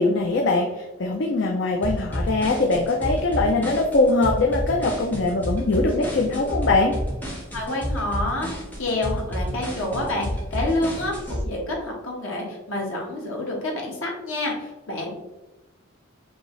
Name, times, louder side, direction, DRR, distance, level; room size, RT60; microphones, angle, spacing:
voice 1, 0.0-6.9, left 2 dB, 60° left, 2 dB, 0.4 m, -22 dB
sound 1, 1.8-11.4, equal, 10° left, 1.0 m, -30 dB
voice 2, 7.5-8.5 8.8-15.1, left 1 dB, 85° left, -1 dB, 1.3 m, -28 dB
5.3 x 2.8 x 3.1 m, 1.0 s
head